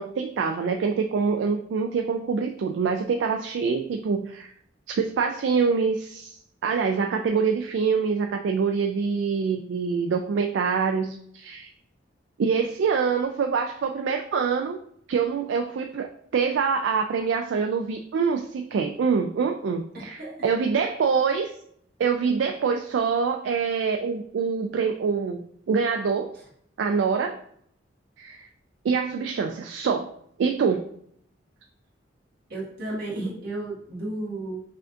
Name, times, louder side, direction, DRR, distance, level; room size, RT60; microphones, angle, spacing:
voice 1, 0.0-4.5 5.0-6.3 6.6-11.7 12.4-14.8 15.1-21.5 22.0-26.3 26.8-27.4 28.2-28.5 28.8-30.1 30.4-30.9, right 5 dB, 75° right, 4 dB, 0.3 m, -25 dB
voice 2, 19.9-20.3 32.5-34.6, right 2 dB, 55° right, -6 dB, 1.6 m, -33 dB
5.6 x 2.5 x 2.5 m, 0.66 s
head